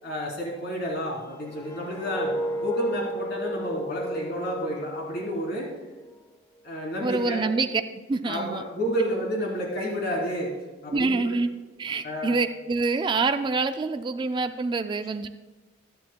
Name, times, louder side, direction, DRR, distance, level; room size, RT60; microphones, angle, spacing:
voice 1, 0.0-5.7 6.6-7.4 8.2-10.5 10.8-11.2 12.0-12.3, equal, 60° left, -3 dB, 3.3 m, -30 dB
sound 1, 1.2-6.2 6.6-6.9, equal, 15° left, 0.9 m, -34 dB
voice 2, 7.0-8.6 10.9-11.5 11.8-15.3, right 3 dB, 25° right, 9 dB, 0.3 m, -26 dB
21.0 x 8.5 x 2.2 m, 1.2 s
head